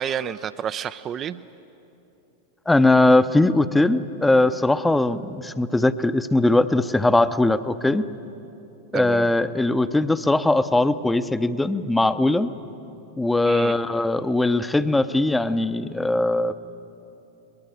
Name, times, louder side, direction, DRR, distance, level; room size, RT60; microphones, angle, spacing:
voice 1, 0.0-1.4 8.9-9.3 13.4-13.8, right 9 dB, 30° right, 13 dB, 0.5 m, -29 dB
voice 2, 2.7-8.0 8.9-12.5 13.2-16.6, left 2 dB, 5° left, 12 dB, 0.8 m, -20 dB
23.5 x 21.5 x 9.2 m, 2.9 s
figure-of-eight pair, 90°, 0 cm